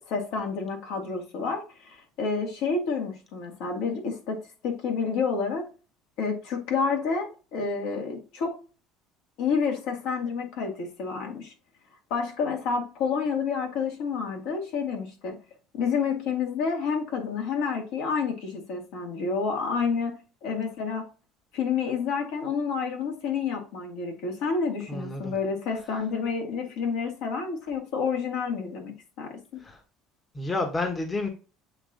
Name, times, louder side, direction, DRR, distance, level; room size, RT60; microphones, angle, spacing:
voice 1, 0.1-5.7 6.2-8.6 9.4-11.5 12.1-15.4 15.7-21.1 21.5-29.6, left 5 dB, 75° left, 2.2 m, -29 dB
voice 2, 24.9-25.3 29.6-29.8 30.3-31.3, left 2 dB, 20° left, 1.1 m, -30 dB
7.9 x 3.0 x 3.9 m
cardioid pair, 115°, 0 cm